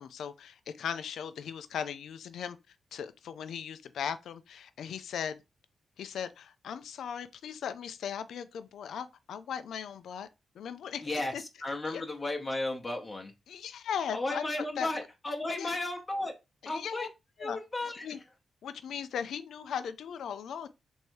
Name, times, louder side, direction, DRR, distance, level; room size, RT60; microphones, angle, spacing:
voice 1, 0.0-5.4 6.0-10.3 10.6-11.4 11.8-12.0 13.5-14.9 15.6-15.7 16.6-17.1 17.4-17.6 18.0-18.2 18.6-20.7, left 8 dB, 80° left, 0.3 m, -38 dB
voice 2, 11.0-13.3 14.1-16.3 16.6-17.1 17.4-18.1, left 2 dB, 35° left, 0.8 m, -34 dB
3.2 x 2.6 x 4.5 m
cardioid pair, 60°, 0 cm